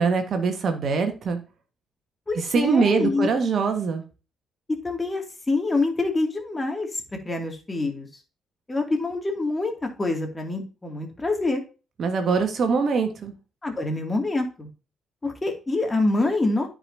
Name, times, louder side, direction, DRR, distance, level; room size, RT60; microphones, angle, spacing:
voice 1, 0.0-1.4 2.3-4.0 12.0-13.3, right 5 dB, 55° right, 6 dB, 1.4 m, -23 dB
voice 2, 2.3-3.3 4.8-8.1 8.7-11.6 13.6-14.7 15.2-16.7, left 2 dB, 25° left, 3 dB, 2.3 m, -26 dB
13.5 x 5.0 x 2.7 m, 0.32 s
figure-of-eight pair, 45°, 0 cm